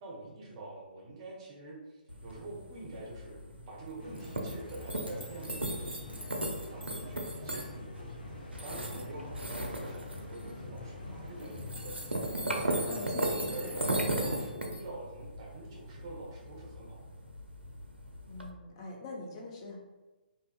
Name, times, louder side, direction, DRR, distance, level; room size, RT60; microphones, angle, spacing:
voice 1, 0.0-3.4 3.7-6.3 6.7-17.2, right 2 dB, 30° right, -3 dB, 0.7 m, -45 dB
sound 1, 2.1-18.5, right 1 dB, 85° right, 0.4 m, -37 dB
sound 2, 4.0-14.5, left 2 dB, 70° left, 0.8 m, -46 dB
voice 2, 12.9-13.8 18.3-19.8, left 2 dB, 30° left, -1 dB, 0.4 m, -43 dB
2.4 x 2.4 x 2.3 m, 1.1 s
figure-of-eight pair, 135°, 6 cm